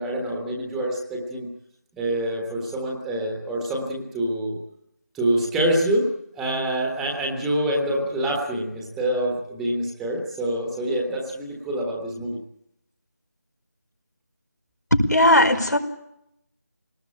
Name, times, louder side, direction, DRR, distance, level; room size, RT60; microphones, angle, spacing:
voice 1, 0.0-1.5 1.9-4.6 5.1-6.1 6.3-12.4, right 1 dB, 5° right, 0 dB, 1.4 m, -26 dB
voice 2, 14.9-15.8, left 1 dB, 80° left, 5 dB, 5.2 m, -17 dB
24.0 x 19.5 x 8.8 m, 0.80 s
figure-of-eight pair, 165°, 9 cm